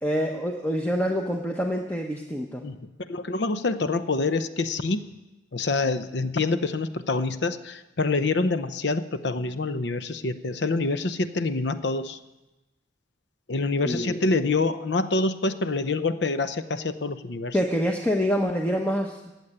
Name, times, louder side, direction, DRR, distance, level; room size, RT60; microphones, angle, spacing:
voice 1, 0.0-2.6 13.9-14.2 17.5-19.3, equal, 10° left, 2 dB, 0.8 m, -26 dB
voice 2, 3.1-5.1 5.5-12.2 13.5-17.6, left 3 dB, 65° left, 12 dB, 0.7 m, -26 dB
15.5 x 8.1 x 9.9 m, 1.0 s
head